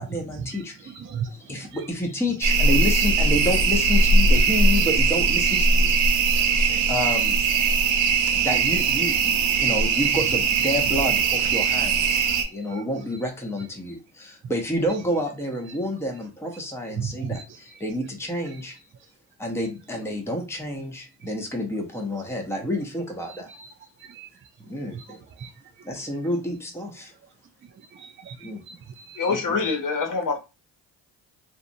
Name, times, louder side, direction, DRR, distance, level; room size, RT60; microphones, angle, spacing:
voice 1, 0.0-1.0 1.3-6.0 6.9-7.8 8.3-18.7 19.4-23.7 24.7-25.2 25.8-27.1 28.4-28.6 29.3-29.7, left 1 dB, 5° left, 0.8 m, -29 dB
voice 2, 0.9-1.3 1.6-1.8 12.2-12.4 12.7-12.8 17.0-17.4 21.2-21.3 23.3-23.6 24.1-24.3 24.9-25.0 25.4-25.5 27.9-29.2, right 7 dB, 30° right, 0.4 m, -36 dB
sound 1, 2.4-12.4, right 4 dB, 90° right, 0.6 m, -20 dB
voice 3, 29.2-30.4, left 4 dB, 45° left, 0.7 m, -25 dB
2.6 x 2.0 x 2.6 m
supercardioid pair, 55°, 44 cm